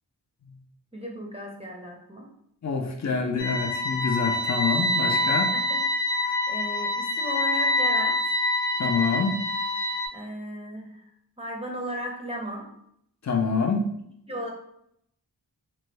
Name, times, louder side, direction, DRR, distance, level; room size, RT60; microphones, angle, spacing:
voice 1, 0.9-2.3 5.5-5.8 6.5-8.2 10.1-11.0 11.4-12.7 14.3-14.5, equal, 15° right, -1 dB, 0.6 m, -35 dB
voice 2, 2.6-5.5 8.8-9.4 13.2-13.9, left 4 dB, 40° left, 3 dB, 0.5 m, -26 dB
sound 1, 3.4-10.1, left 1 dB, 80° left, 0.7 m, -26 dB
2.9 x 2.2 x 3.2 m, 0.72 s
wide cardioid pair, 45°, 43 cm